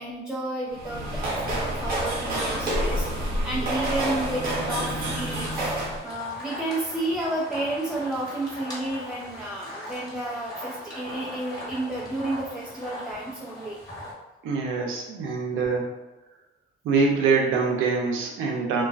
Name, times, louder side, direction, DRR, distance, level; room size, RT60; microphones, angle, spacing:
voice 1, 0.0-5.5 6.0-13.8, right 1 dB, 5° right, -4 dB, 0.3 m, -31 dB
sound 1, 0.7-6.0, right 1 dB, 50° right, 0.8 m, -28 dB
sound 2, 1.0-14.1, equal, 20° left, 1.1 m, -40 dB
voice 2, 14.4-15.9 16.8-18.8, right 4 dB, 85° right, 0 dB, 0.5 m, -24 dB
2.3 x 2.3 x 2.3 m, 1.1 s
cardioid pair, 90°, 20 cm